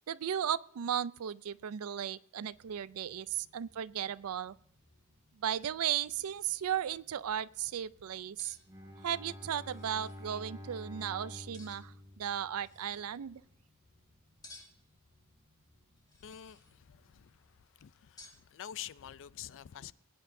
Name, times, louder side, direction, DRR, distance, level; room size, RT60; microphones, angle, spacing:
voice 1, 0.1-4.5 5.4-8.6 9.0-13.4, right 9 dB, 70° right, 0.4 m, -36 dB
sound 1, 2.5-17.6, left 1 dB, 35° right, 5.3 m, -69 dB
sound 2, 5.0-5.1 5.5-5.8 6.1-6.7 8.4-8.6 9.6-10.2 11.5-12.0 12.5-13.1 14.4-14.9 16.0-16.8 18.2-18.4, left 2 dB, 15° left, 2.0 m, -56 dB
Bowed string instrument, 8.7-13.0, left 1 dB, 15° right, 1.9 m, -48 dB
voice 2, 16.2-17.4 17.8-19.9, left 10 dB, 60° left, 0.4 m, -47 dB
21.5 x 9.6 x 2.6 m
head